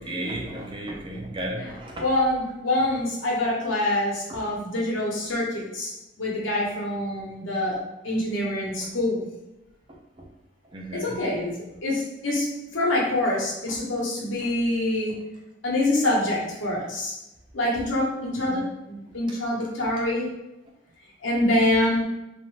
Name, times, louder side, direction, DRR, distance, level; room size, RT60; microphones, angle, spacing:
voice 1, 0.0-2.1 4.3-4.4 8.8-8.9 9.9-10.3 10.6-11.3 13.7-13.8 14.4-14.5 18.3-18.6 19.3-19.4 19.8-19.9, right 1 dB, 25° right, 0 dB, 0.4 m, -35 dB
voice 2, 2.0-5.9 6.2-7.8 8.0-9.3 10.9-15.1 15.6-17.1 17.5-20.3 21.2-22.0, left 1 dB, 85° left, -4 dB, 0.9 m, -25 dB
2.5 x 2.1 x 3.0 m, 0.92 s
head